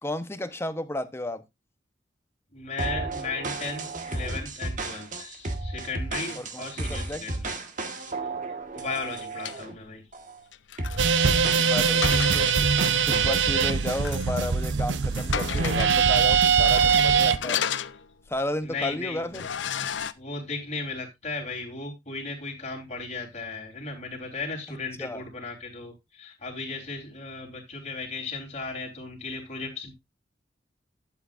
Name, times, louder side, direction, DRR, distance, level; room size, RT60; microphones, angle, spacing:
voice 1, 0.0-1.4 6.4-7.2 11.5-12.5 13.0-17.6 18.3-19.5 24.7-25.2, left 1 dB, 15° left, 0.9 m, -33 dB
voice 2, 2.5-7.5 8.7-10.0 18.6-19.5 20.1-29.9, left 3 dB, 40° left, 3.6 m, -36 dB
sound 1, 2.8-9.7 10.1-10.4 10.8-13.4, right 2 dB, 45° right, 1.6 m, -34 dB
sound 2, 8.8-9.6 10.5-12.8 13.2-13.3 13.9-14.3 14.6-14.7 15.1-16.0 16.6-18.4 18.8-18.9 19.3-20.1, left 8 dB, 85° left, 0.6 m, -34 dB
sound 3, 11.0-17.4, right 6 dB, 80° right, 0.7 m, -22 dB
12.0 x 8.3 x 2.5 m
head